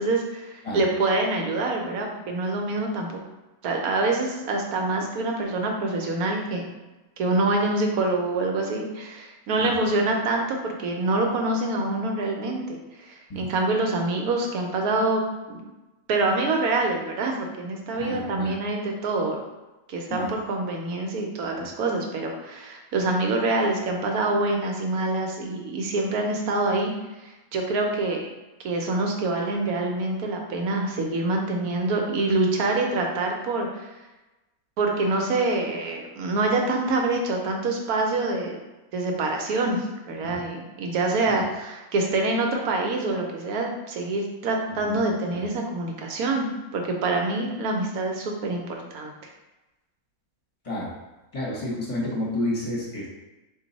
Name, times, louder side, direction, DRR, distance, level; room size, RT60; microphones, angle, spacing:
voice 1, 0.0-3.1 3.6-6.6 7.2-15.6 16.1-19.4 19.9-26.9 27.2-28.3 28.6-33.9 34.8-38.6 38.9-46.5 46.7-49.1, right 2 dB, 80° right, 1 dB, 1.2 m, -26 dB
voice 2, 17.9-18.5 20.1-20.3 40.2-40.4 41.3-41.4 44.8-45.0 45.3-45.4 50.6-50.9 51.3-53.1, left 1 dB, 25° left, -4 dB, 1.0 m, -30 dB
3.9 x 2.6 x 4.0 m, 1.1 s
omnidirectional pair, 1.5 m